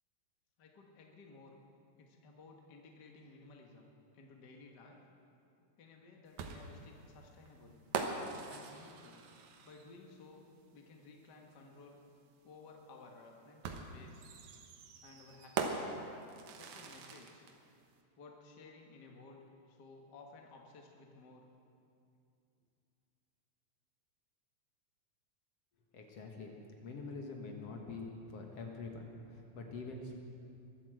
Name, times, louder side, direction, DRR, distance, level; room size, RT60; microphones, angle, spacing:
voice 1, 0.6-1.6 2.0-3.9 4.1-5.0 5.8-7.8 8.5-9.2 9.7-10.5 10.7-12.0 12.4-14.3 15.0-16.0 16.5-17.5 18.2-19.4 19.7-21.5, left 3 dB, 40° left, 1 dB, 1.7 m, -56 dB
sound 1, 6.4-10.0 11.5-11.6 13.6-17.5, right 5 dB, 70° right, 2.4 m, -42 dB
voice 2, 25.9-29.0 29.3-30.1, left 3 dB, 55° left, 1 dB, 2.4 m, -45 dB
22.0 x 8.6 x 7.6 m, 2.5 s
omnidirectional pair, 3.5 m